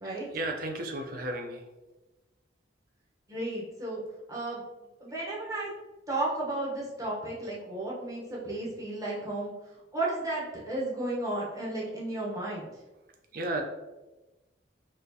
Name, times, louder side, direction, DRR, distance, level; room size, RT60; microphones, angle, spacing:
voice 1, 0.0-1.7 13.3-13.6, right 1 dB, 50° right, 3 dB, 0.5 m, -34 dB
voice 2, 3.3-4.0 4.3-4.6 5.0-5.7 6.1-9.5 9.9-12.7, right 2 dB, 20° right, -5 dB, 0.9 m, -33 dB
4.2 x 2.4 x 2.7 m, 1.1 s
head